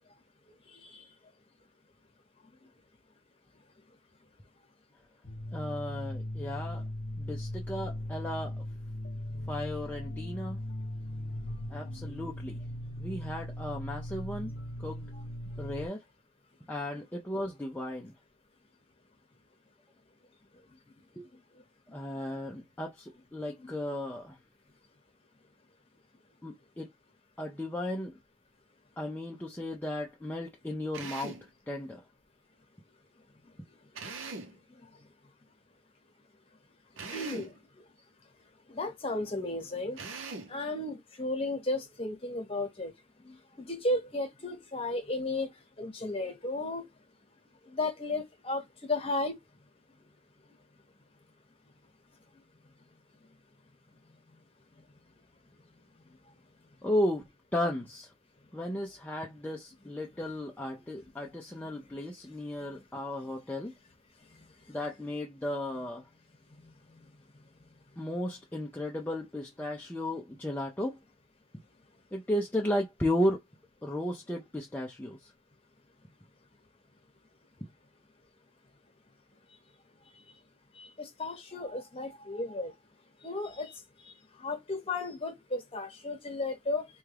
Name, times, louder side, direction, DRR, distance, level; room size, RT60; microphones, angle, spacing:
sound 1, 5.2-15.9, left 1 dB, 60° left, 0.5 m, -38 dB
voice 1, 5.5-6.8 7.2-8.5 9.5-10.6 11.7-12.6 13.0-14.5 14.8-15.1 15.6-16.0 16.7-18.1 21.2-21.3 21.9-24.4 26.4-26.9 27.4-28.2 29.0-32.0 56.8-57.2 57.5-58.1 58.5-63.7 64.7-66.0 68.0-71.0 72.1-73.4 73.8-75.3, left 1 dB, 10° left, 0.4 m, -34 dB
Drill, 30.9-31.5 33.9-34.6 37.0-37.6 40.0-40.6, right 4 dB, 85° right, 0.7 m, -41 dB
voice 2, 37.1-37.5 38.7-40.0 40.5-42.9 43.2-45.5 45.8-46.8 47.7-49.4 80.7-82.7 83.2-86.9, left 2 dB, 30° left, 1.0 m, -34 dB
3.4 x 2.3 x 3.2 m
head